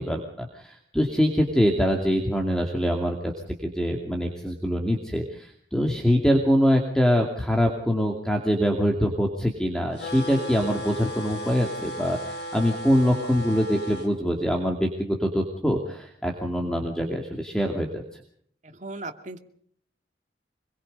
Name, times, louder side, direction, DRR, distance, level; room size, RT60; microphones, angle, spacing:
voice 1, 0.0-3.3 3.6-18.0, equal, 5° left, 2 dB, 2.6 m, -24 dB
sound 1, 10.0-14.1, equal, 65° left, 4.6 m, -35 dB
voice 2, 18.7-19.4, right 2 dB, 40° right, 6 dB, 2.4 m, -36 dB
26.0 x 22.0 x 5.4 m, 0.63 s
head